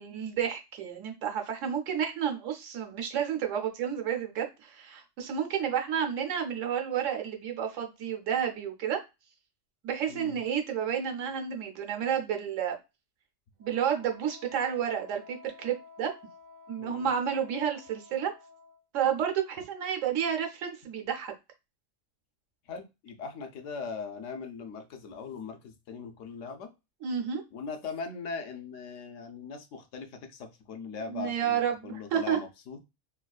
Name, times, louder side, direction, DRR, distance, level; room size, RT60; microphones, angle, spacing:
voice 1, 0.0-9.0 9.8-12.8 13.6-16.1 16.7-18.3 18.9-21.3 27.0-27.4 31.1-32.4, right 8 dB, 85° right, 3 dB, 1.1 m, -31 dB
voice 2, 10.1-10.4 16.8-17.1 22.7-26.7 27.5-32.8, left 5 dB, 80° left, 6 dB, 1.0 m, -40 dB
Wind instrument woodwind instrument, 13.6-18.8, left 4 dB, 55° right, 0.5 m, -52 dB
3.5 x 2.3 x 2.3 m, 0.25 s
omnidirectional pair, 1.3 m